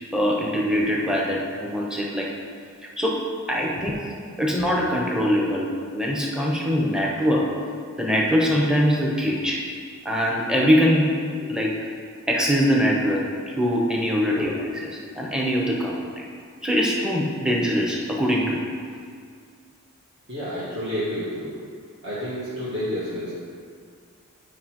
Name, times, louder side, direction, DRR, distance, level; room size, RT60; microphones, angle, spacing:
voice 1, 0.1-2.3 3.0-3.2 3.5-4.0 4.4-7.5 8.0-9.6 10.0-11.8 12.3-14.5 14.8-14.9 15.1-16.2 16.6-18.6, equal, 5° right, -3 dB, 0.8 m, -22 dB
voice 2, 20.3-21.5 22.0-23.4, equal, 55° right, -11 dB, 1.6 m, -29 dB
10.0 x 5.1 x 3.0 m, 2.1 s
head